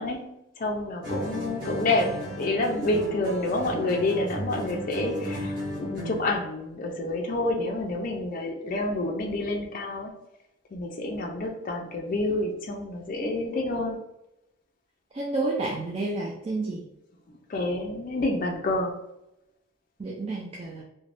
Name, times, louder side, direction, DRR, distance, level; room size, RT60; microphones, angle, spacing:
voice 1, 0.0-10.1 10.7-14.0 17.5-18.9, left 2 dB, 45° left, 1 dB, 0.4 m, -28 dB
sound 1, 1.0-6.4, equal, 50° right, 1.4 m, -35 dB
voice 2, 15.2-16.8 20.0-20.8, right 2 dB, 30° right, -2 dB, 0.3 m, -30 dB
3.2 x 2.1 x 2.5 m, 0.87 s
head